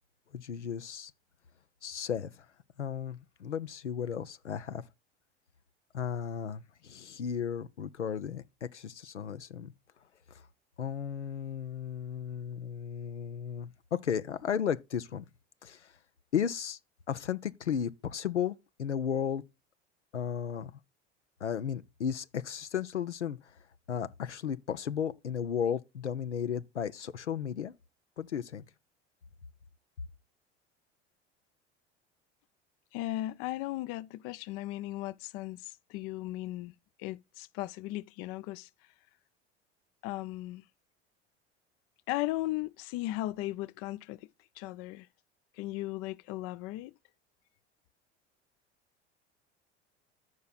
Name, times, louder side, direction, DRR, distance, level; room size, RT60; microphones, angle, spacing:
voice 1, 0.3-1.1 1.8-2.5 2.8-4.8 5.9-9.7 10.3-10.4 10.8-15.2 15.6-15.9 16.3-16.8 17.1-19.4 20.1-20.7 21.4-23.6 23.9-27.7 28.2-28.7, left 8 dB, 85° left, 0.6 m, -34 dB
voice 2, 32.9-36.7 37.0-38.7 40.0-40.6 42.1-44.3 44.6-45.1 45.6-46.9, left 17 dB, 45° left, 0.5 m, -36 dB
14.0 x 5.6 x 2.3 m
figure-of-eight pair, 70°, 34 cm